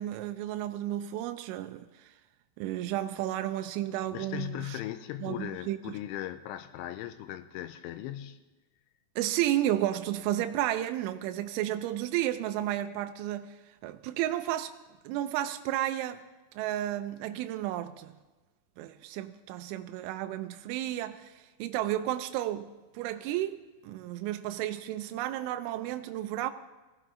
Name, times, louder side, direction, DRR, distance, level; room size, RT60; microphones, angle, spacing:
voice 1, 0.0-2.1 2.6-4.8 5.2-6.0 9.2-14.7 15.0-16.2 16.5-18.1 18.8-22.7 22.9-23.6 23.8-26.5, right 13 dB, 85° right, 3.0 m, -32 dB
voice 2, 4.1-8.4, left 13 dB, 90° left, 3.1 m, -38 dB
19.5 x 15.0 x 3.7 m
omnidirectional pair, 5.4 m